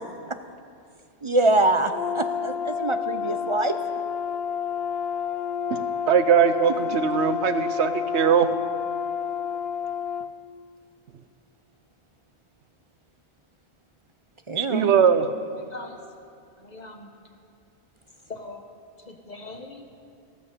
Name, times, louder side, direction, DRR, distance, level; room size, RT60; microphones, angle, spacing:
voice 1, 1.2-3.8 14.5-14.9, right 2 dB, 35° right, 9 dB, 0.6 m, -24 dB
Brass instrument, 1.9-10.3, left 7 dB, 65° left, 0.9 m, -29 dB
voice 2, 5.7-8.5 14.6-15.3, right 7 dB, 90° right, 12 dB, 1.1 m, -21 dB
voice 3, 15.5-16.0 16.6-17.1 18.3-18.7 19.0-19.9, left 3 dB, 40° left, 4 dB, 1.3 m, -41 dB
14.5 x 14.0 x 6.7 m, 2.4 s
omnidirectional pair, 1.1 m